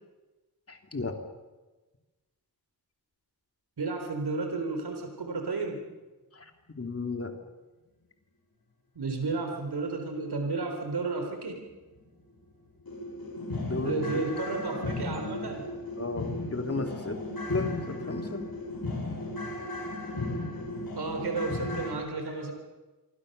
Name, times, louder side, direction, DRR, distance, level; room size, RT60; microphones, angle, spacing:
voice 1, 0.7-1.2 6.3-6.5 6.8-7.4 13.6-14.2 16.0-17.2 17.5-18.5 22.3-22.4, left 3 dB, 40° left, 5 dB, 2.9 m, -34 dB
voice 2, 3.8-5.8 9.0-11.6 13.8-15.6 21.0-22.5, right 3 dB, 90° right, 4 dB, 4.0 m, -32 dB
sound 1, 11.9-12.0 12.4-12.5 12.9-21.9, left 2 dB, 70° left, 6.4 m, -35 dB
27.0 x 24.5 x 6.8 m, 1.2 s
wide cardioid pair, 120°, 38 cm